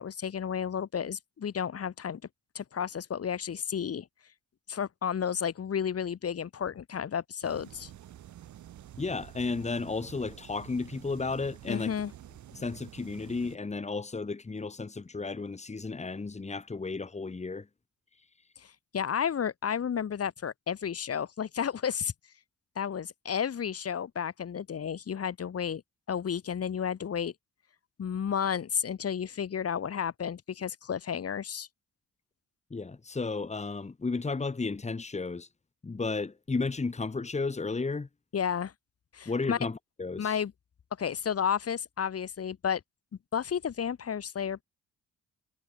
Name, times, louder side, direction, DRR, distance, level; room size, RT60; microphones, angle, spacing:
voice 1, 0.0-2.2 2.5-4.1 4.7-7.9 11.7-12.1 18.9-22.1 22.8-25.8 26.1-27.3 28.0-31.7 38.3-38.7 39.1-39.6 40.2-40.5 41.0-42.8 43.3-44.6, left 8 dB, 50° left, 5.9 m, -32 dB
sound 1, 7.4-13.6, right 11 dB, 70° right, 5.1 m, -49 dB
voice 2, 9.0-11.9 12.5-17.7 32.7-35.5 35.8-38.1 39.3-40.4, left 3 dB, 20° left, 2.9 m, -33 dB
cardioid pair, 90°, 30 cm